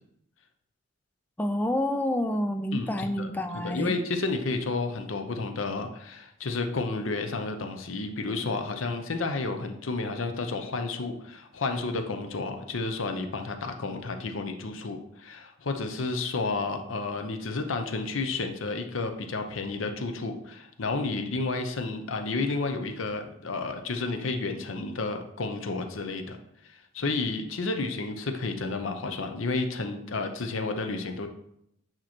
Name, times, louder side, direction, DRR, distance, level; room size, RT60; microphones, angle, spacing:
voice 1, 1.4-3.9, left 1 dB, 10° left, 6 dB, 0.4 m, -28 dB
voice 2, 2.7-26.4 26.6-31.3, left 3 dB, 90° left, 6 dB, 0.7 m, -31 dB
8.8 x 3.0 x 4.3 m, 0.78 s
head